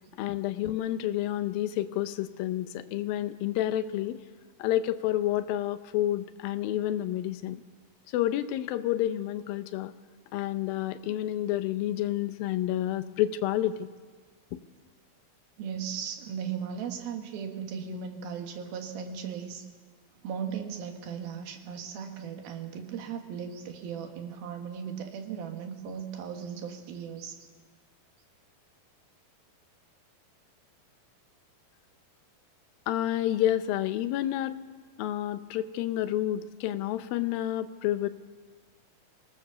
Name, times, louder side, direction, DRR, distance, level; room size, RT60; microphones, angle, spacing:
voice 1, 0.2-4.2 4.6-7.6 8.1-9.9 10.3-13.9 32.9-34.6 35.0-38.1, left 13 dB, 75° left, 12 dB, 2.4 m, -29 dB
voice 2, 15.6-19.7 20.2-27.4, right 7 dB, 75° right, 4 dB, 3.4 m, -37 dB
25.0 x 18.5 x 6.8 m, 1.5 s
omnidirectional pair, 4.4 m